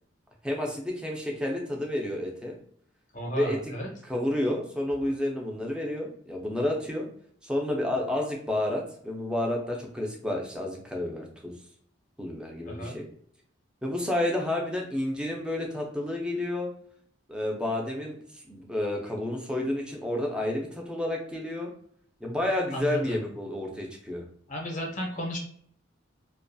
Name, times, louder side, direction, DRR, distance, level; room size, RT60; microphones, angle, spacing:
voice 1, 0.4-2.6 3.4-3.7 4.0-7.1 7.4-11.5 12.2-13.1 13.8-16.7 17.3-21.7 22.2-24.2, left 1 dB, 5° right, 0 dB, 0.4 m, -30 dB
voice 2, 3.1-3.9 12.7-13.0 22.7-23.3 24.5-25.4, equal, 40° left, 0 dB, 0.6 m, -33 dB
2.4 x 2.2 x 2.5 m, 0.63 s
head